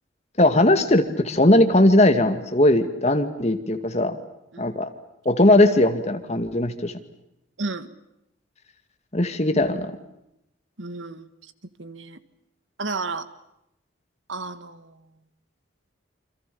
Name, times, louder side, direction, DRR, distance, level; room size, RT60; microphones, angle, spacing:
voice 1, 0.4-4.2 4.6-4.9 5.3-6.9 9.1-9.9, left 1 dB, 35° left, 8 dB, 2.3 m, -19 dB
voice 2, 7.6-7.9 10.8-11.3 11.8-12.2 12.8-13.3 14.3-15.0, right 3 dB, 90° right, 12 dB, 1.8 m, -32 dB
28.5 x 26.5 x 7.1 m, 0.83 s
head